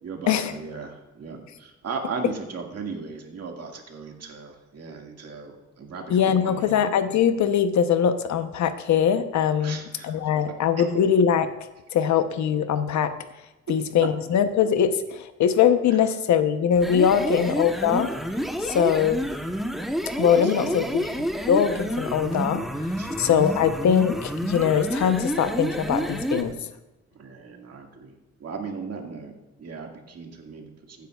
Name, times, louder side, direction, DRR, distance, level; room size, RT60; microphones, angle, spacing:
voice 1, 0.0-6.7 9.6-10.3 10.8-10.9 17.2-17.4 20.3-20.9 23.0-23.3 27.1-28.2 28.4-29.3 29.6-31.1, right 5 dB, 55° right, 2 dB, 1.9 m, -37 dB
voice 2, 6.1-11.5 11.9-13.1 13.7-18.1 18.6-19.2 20.2-21.1 21.5-22.6 23.2-26.7, left 8 dB, 70° left, 10 dB, 0.8 m, -22 dB
sound 1, 16.7-26.5, equal, ahead, 0.9 m, -29 dB
14.5 x 9.5 x 2.4 m, 1.0 s
cardioid pair, 90°, 30 cm